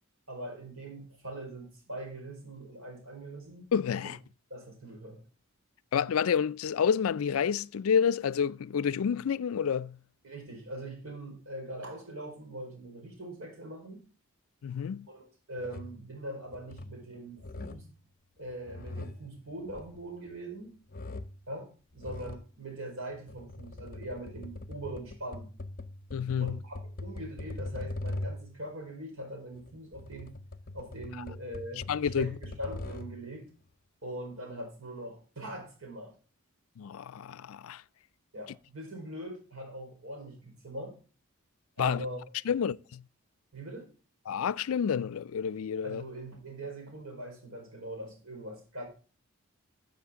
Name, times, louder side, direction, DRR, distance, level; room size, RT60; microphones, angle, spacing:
voice 1, 0.3-3.7 4.5-5.2 10.2-14.0 15.1-17.9 18.4-20.8 21.5-25.5 26.4-30.4 30.7-33.5 34.0-36.1 38.3-41.0 41.8-42.2 43.5-43.9 45.8-48.9, right 1 dB, 70° right, 4.5 m, -42 dB
voice 2, 3.7-4.2 5.9-10.0 14.6-15.1 26.1-26.6 31.9-32.3 36.8-37.8 41.8-42.0 42.5-43.0 44.3-46.0, left 7 dB, 75° left, 0.4 m, -29 dB
sound 1, 15.6-16.0 16.5-17.0 17.4-18.0 18.5-20.5 20.9-21.5 22.0-22.5 23.1-28.6 29.5-33.3, left 2 dB, 40° left, 0.7 m, -41 dB
13.0 x 7.5 x 3.7 m
head